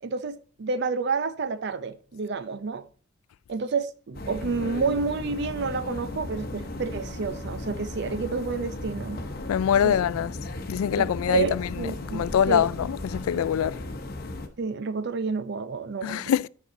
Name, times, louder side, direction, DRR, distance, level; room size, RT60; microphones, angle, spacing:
voice 1, 0.0-2.9 3.5-9.2 9.8-10.0 11.0-12.7 14.6-16.3, right 4 dB, 55° right, 0.5 m, -29 dB
sound 1, 4.1-14.5, left 2 dB, 45° left, 0.9 m, -36 dB
voice 2, 9.5-10.3 10.7-11.7 12.1-13.8 16.0-16.5, left 9 dB, 90° left, 0.3 m, -24 dB
9.6 x 6.0 x 4.0 m
head